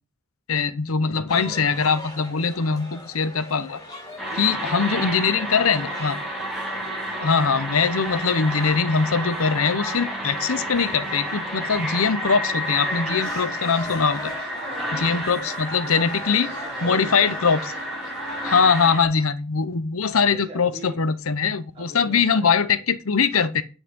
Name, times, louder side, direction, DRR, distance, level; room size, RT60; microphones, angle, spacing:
voice 1, 0.5-3.8 4.4-6.2 7.2-14.3 14.9-16.5 16.8-17.7 18.4-23.6, left 5 dB, 85° left, 0.9 m, -22 dB
sound 1, 1.3-19.3, left 1 dB, 20° left, 4.8 m, -39 dB
sound 2, 4.2-19.0, equal, ahead, 5.6 m, -31 dB
voice 2, 4.3-6.4 6.7-7.3 14.5-17.6 18.3-18.4 20.3-21.0 21.7-22.7, right 1 dB, 25° right, 3.8 m, -43 dB
9.7 x 5.7 x 7.8 m
head